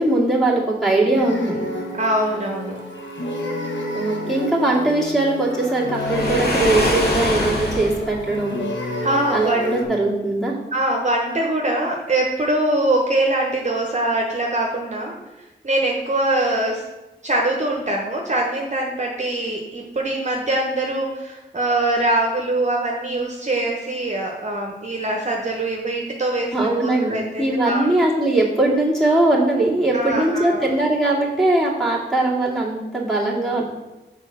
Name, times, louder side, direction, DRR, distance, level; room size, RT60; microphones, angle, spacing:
voice 1, 0.0-1.6 3.9-8.6 9.3-10.5 26.5-33.6, right 2 dB, ahead, -6 dB, 2.4 m, -20 dB
sound 1, 1.2-9.8, left 1 dB, 80° left, 1.2 m, -29 dB
voice 2, 2.0-2.8 9.0-9.7 10.7-15.2 15.6-16.8 17.2-27.9 29.9-30.7, right 1 dB, 40° right, 0 dB, 1.1 m, -23 dB
Waves surf, 6.0-8.1, left 1 dB, 60° left, 2.1 m, -23 dB
7.0 x 4.2 x 6.0 m, 1.0 s
wide cardioid pair, 55°, 19 cm